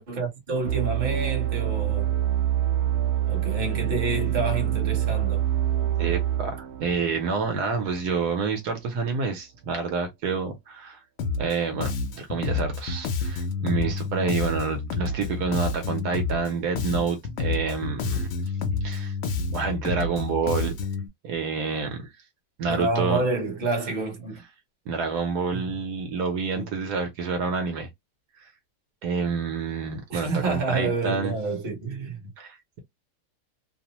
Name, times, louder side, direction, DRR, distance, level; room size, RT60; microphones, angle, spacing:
voice 1, 0.0-2.2 3.3-5.4 22.6-24.4 25.5-25.6 26.5-26.7 30.1-32.2, right 3 dB, 40° right, 1.0 m, -28 dB
sound 1, 0.6-8.2, right 11 dB, 60° right, 0.8 m, -26 dB
voice 2, 6.0-11.0 11.4-18.5 18.8-19.2 19.5-20.7 21.2-22.1 22.6-23.2 24.9-27.9 28.4-28.5 29.0-31.3 32.4-32.8, right 5 dB, 75° right, 1.2 m, -28 dB
Bass guitar, 11.2-11.5 11.8-16.5 16.7-21.1, left 4 dB, 80° left, 0.6 m, -29 dB
2.9 x 2.0 x 2.8 m
omnidirectional pair, 1.8 m